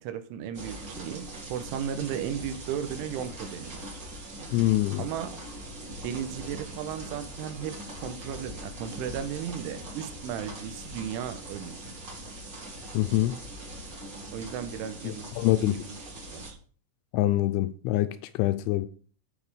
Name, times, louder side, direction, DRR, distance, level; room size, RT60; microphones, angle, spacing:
voice 1, 0.0-3.8 5.0-5.3 6.0-11.9 14.3-15.3 15.6-16.0 16.3-16.6, right 9 dB, 85° right, 3.3 m, -35 dB
sound 1, 0.5-16.5, right 1 dB, 35° right, 2.0 m, -41 dB
voice 2, 4.5-5.0 12.9-13.4 15.4-15.8 17.1-18.9, left 16 dB, 85° left, 2.8 m, -25 dB
11.5 x 5.2 x 4.9 m
omnidirectional pair, 5.6 m